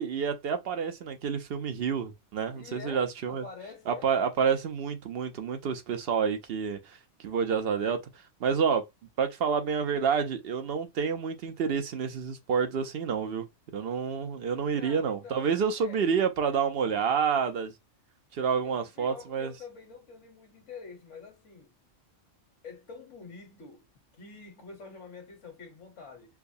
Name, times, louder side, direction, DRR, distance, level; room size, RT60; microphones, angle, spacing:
voice 1, 0.0-3.4 3.9-7.0 7.2-8.0 8.4-8.8 9.2-13.5 13.7-17.7 18.3-19.5, right 6 dB, 60° right, 0.8 m, -28 dB
voice 2, 2.6-4.1 14.8-16.1 16.8-17.5 18.6-21.7 22.6-23.9 24.1-26.4, left 5 dB, 70° left, 1.5 m, -47 dB
4.6 x 2.0 x 2.6 m
omnidirectional pair, 1.3 m